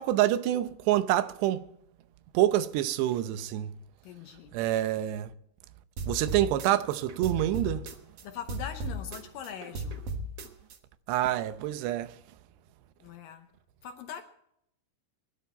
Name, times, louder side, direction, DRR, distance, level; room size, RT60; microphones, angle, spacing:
voice 1, 0.0-1.6 2.3-3.7 4.5-5.3 6.1-7.9 11.1-12.1, right 13 dB, 90° right, 3.0 m, -27 dB
voice 2, 4.0-4.6 8.2-10.0 13.0-13.5 13.8-14.2, left 9 dB, 75° left, 2.2 m, -41 dB
sound 1, 6.0-8.2 8.5-10.8, right 1 dB, 65° right, 1.5 m, -36 dB
22.5 x 12.0 x 4.3 m
omnidirectional pair, 4.8 m